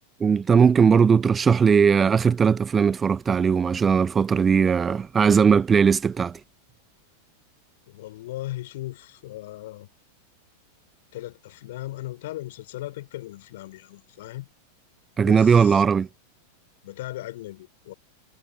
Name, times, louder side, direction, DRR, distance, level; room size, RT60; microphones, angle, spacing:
voice 1, 0.2-6.4 15.2-16.1, right 6 dB, 20° right, 0.6 m, -19 dB
voice 2, 7.9-9.9 11.1-14.5 15.2-15.8 16.8-17.9, left 16 dB, 55° left, 3.2 m, -37 dB
figure-of-eight pair, 90°, 0 cm